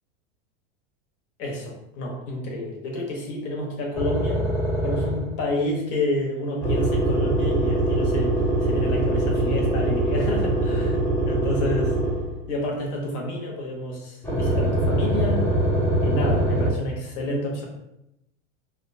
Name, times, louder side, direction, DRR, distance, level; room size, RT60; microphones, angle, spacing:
voice 1, 1.4-4.5 4.8-11.0 11.3-12.0 12.5-15.4 16.0-17.7, left 1 dB, 50° left, -1 dB, 0.9 m, -29 dB
sound 1, 3.9-5.4 6.6-12.4 14.2-16.7, right 1 dB, 5° left, 0.4 m, -23 dB
2.7 x 2.1 x 2.6 m, 0.85 s
supercardioid pair, 125°, 36 cm